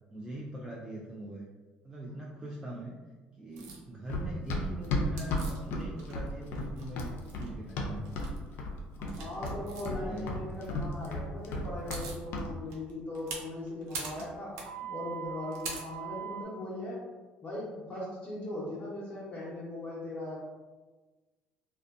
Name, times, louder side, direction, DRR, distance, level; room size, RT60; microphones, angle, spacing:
voice 1, 0.1-1.5 1.8-3.0 3.4-8.1 9.0-9.1 9.9-10.6, right 1 dB, 15° right, -3 dB, 0.4 m, -42 dB
sound 1, 3.6-3.8 5.2-6.3 6.6-7.5 8.0-8.4 9.1-9.9 11.4-11.5 11.7-12.2 12.7-16.4, right 5 dB, 80° right, 0.5 m, -41 dB
Run, 4.1-8.3 8.6-9.2 9.4-12.1 12.3-12.5, left 2 dB, 65° left, 0.4 m, -33 dB
voice 2, 9.0-17.0 17.4-20.4, left 1 dB, 30° left, -8 dB, 0.9 m, -39 dB
2.4 x 2.3 x 2.4 m, 1.3 s
supercardioid pair, 75°, 4 cm